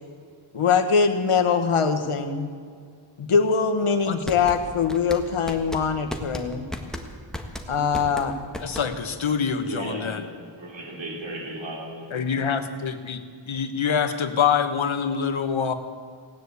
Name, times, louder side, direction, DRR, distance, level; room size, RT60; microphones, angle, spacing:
voice 1, 0.5-2.5 3.2-6.7 7.7-8.3, left 5 dB, 85° left, 6 dB, 1.4 m, -22 dB
sound 1, 4.0-9.2, left 1 dB, ahead, 1.5 m, -35 dB
voice 2, 8.6-10.2 12.1-15.7, left 7 dB, 70° left, 8 dB, 1.3 m, -25 dB
voice 3, 9.6-12.4, right 1 dB, 60° right, -2 dB, 3.6 m, -36 dB
17.0 x 9.7 x 8.3 m, 2.2 s
wide cardioid pair, 90°, 49 cm